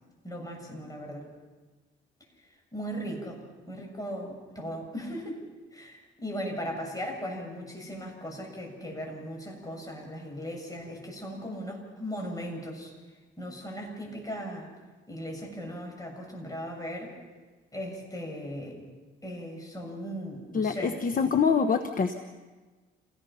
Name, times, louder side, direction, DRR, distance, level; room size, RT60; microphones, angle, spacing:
voice 1, 0.2-1.3 2.7-3.4 3.7-5.4 5.7-12.9 13.4-14.7 15.1-17.2 17.7-18.8 19.2-20.9, equal, 15° left, 1 dB, 7.4 m, -38 dB
voice 2, 20.5-22.1, left 6 dB, 45° left, 6 dB, 1.2 m, -25 dB
28.0 x 18.0 x 5.8 m, 1.3 s
cardioid pair, 90°, 20 cm